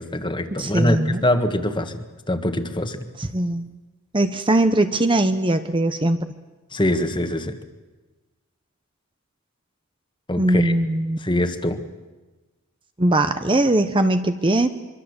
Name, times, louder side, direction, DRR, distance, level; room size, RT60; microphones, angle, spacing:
voice 1, 0.0-3.1 6.7-7.6 10.3-10.7 11.2-11.8, left 1 dB, 20° left, 8 dB, 1.6 m, -23 dB
voice 2, 0.6-1.2 3.2-3.6 4.1-6.2 10.4-11.2 13.0-14.7, right 1 dB, 25° right, 9 dB, 0.9 m, -20 dB
24.5 x 24.0 x 8.1 m, 1.2 s
head